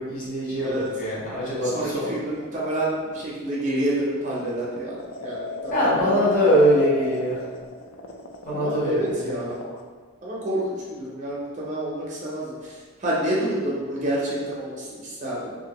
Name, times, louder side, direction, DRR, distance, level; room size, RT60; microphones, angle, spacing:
voice 1, 0.0-2.1 5.7-7.4 8.5-9.4, equal, 40° left, -9 dB, 0.9 m, -22 dB
sound 1, 0.9-9.8, left 2 dB, 65° left, 0.3 m, -37 dB
voice 2, 1.4-6.5 8.5-9.6 10.2-15.6, right 1 dB, 35° right, -5 dB, 0.5 m, -28 dB
2.8 x 2.5 x 2.9 m, 1.5 s
head